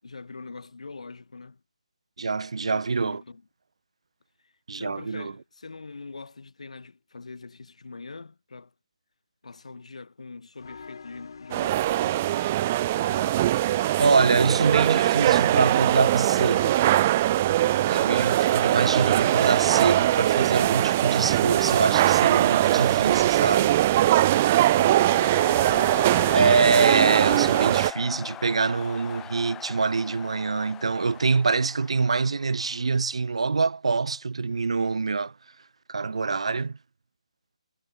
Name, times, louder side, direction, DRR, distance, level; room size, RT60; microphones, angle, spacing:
voice 1, 0.0-1.6 2.6-3.4 4.4-8.7 9.4-12.2 24.3-26.0, left 4 dB, 70° left, 7.1 m, -43 dB
voice 2, 2.2-3.2 4.7-5.3 14.0-16.8 17.9-23.8 26.3-35.3 35.9-36.8, right 4 dB, 60° right, 2.3 m, -25 dB
sound 1, 10.6-20.2, left 5 dB, 45° left, 4.2 m, -45 dB
sound 2, 11.5-27.9, right 14 dB, 15° right, 0.4 m, -21 dB
sound 3, 21.3-33.0, left 12 dB, 5° left, 1.8 m, -41 dB
hypercardioid pair, 180°, 4 cm